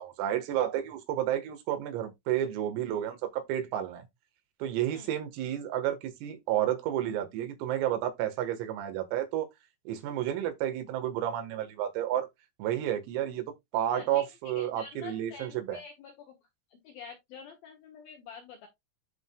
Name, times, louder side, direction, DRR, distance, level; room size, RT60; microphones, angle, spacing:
voice 1, 0.0-4.1 4.6-9.5 9.9-12.3 12.6-13.5 13.7-15.8, right 11 dB, 85° right, 4.2 m, -31 dB
voice 2, 13.9-14.2 14.6-16.4 16.7-18.7, left 6 dB, 70° left, 2.3 m, -47 dB
14.0 x 4.9 x 2.3 m
omnidirectional pair, 5.9 m